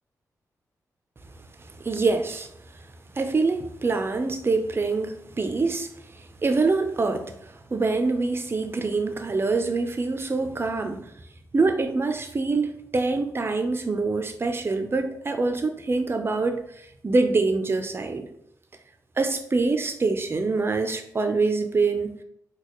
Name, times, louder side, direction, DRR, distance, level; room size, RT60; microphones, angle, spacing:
voice 1, 1.8-2.5 3.2-5.9 6.4-7.3 7.7-11.1 11.5-16.6 17.0-18.3 19.2-22.1, right 3 dB, 35° right, 6 dB, 0.5 m, -25 dB
4.0 x 2.3 x 3.1 m, 0.74 s
cardioid pair, 65°, 7 cm